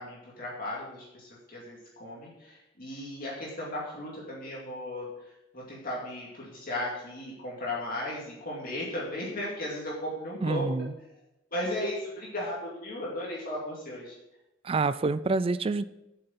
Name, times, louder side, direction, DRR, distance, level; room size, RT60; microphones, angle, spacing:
voice 1, 0.0-5.1 5.5-10.7 11.5-14.1, left 1 dB, 50° left, -5 dB, 2.3 m, -36 dB
voice 2, 10.4-10.9 14.6-15.8, right 3 dB, 30° right, 15 dB, 0.4 m, -27 dB
8.0 x 6.7 x 5.9 m, 0.90 s
head